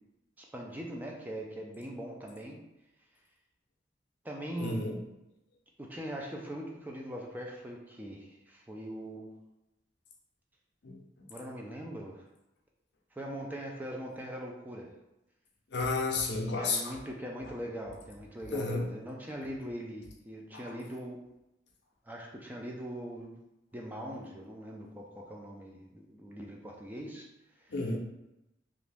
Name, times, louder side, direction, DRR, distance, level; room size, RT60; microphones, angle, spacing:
voice 1, 0.4-2.6 4.2-4.8 5.8-9.3 11.3-12.3 13.1-14.9 16.6-21.2 22.1-23.4 23.7-27.3, equal, 10° right, -1 dB, 0.4 m, -41 dB
voice 2, 4.6-5.0 10.8-11.3 15.7-16.9 18.5-18.9 20.5-20.7 27.7-28.0, left 3 dB, 65° left, 1 dB, 0.6 m, -32 dB
2.9 x 2.5 x 3.3 m, 0.91 s
head